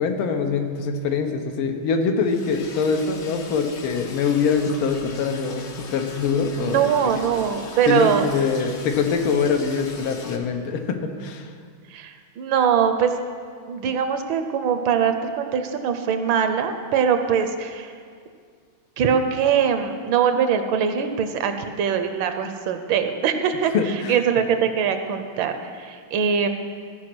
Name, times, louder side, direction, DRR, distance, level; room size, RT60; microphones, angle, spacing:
voice 1, 0.0-6.9 7.2-7.3 7.9-11.5 23.7-24.2, left 5 dB, 85° left, 5 dB, 1.7 m, -24 dB
Liquid, 2.2-10.4, left 4 dB, 55° left, 0.7 m, -40 dB
voice 2, 6.6-8.3 11.9-13.1 13.7-17.9 19.0-26.5, right 7 dB, 75° right, 7 dB, 1.3 m, -22 dB
15.0 x 5.0 x 6.0 m, 2.1 s
omnidirectional pair, 2.3 m